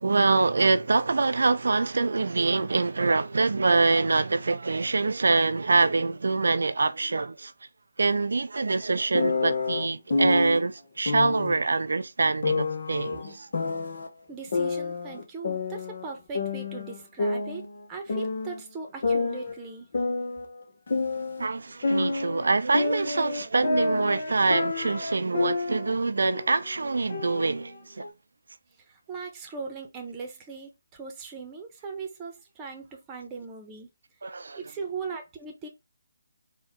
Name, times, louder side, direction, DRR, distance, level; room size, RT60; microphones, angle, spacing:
voice 1, 0.0-7.5 8.0-13.5 21.4-28.1 34.2-34.6, right 3 dB, 70° right, 0.4 m, -25 dB
sound 1, 9.1-10.6 11.1-11.6 12.4-14.1 14.5-16.1 16.3-18.6 19.0-21.5 21.8-25.9 26.2-26.6 27.1-28.1, left 3 dB, 55° left, 0.9 m, -28 dB
voice 2, 14.3-19.9 28.9-33.9 34.6-35.7, right 4 dB, 15° right, 1.0 m, -39 dB
4.2 x 2.4 x 3.6 m
figure-of-eight pair, 150°, 0 cm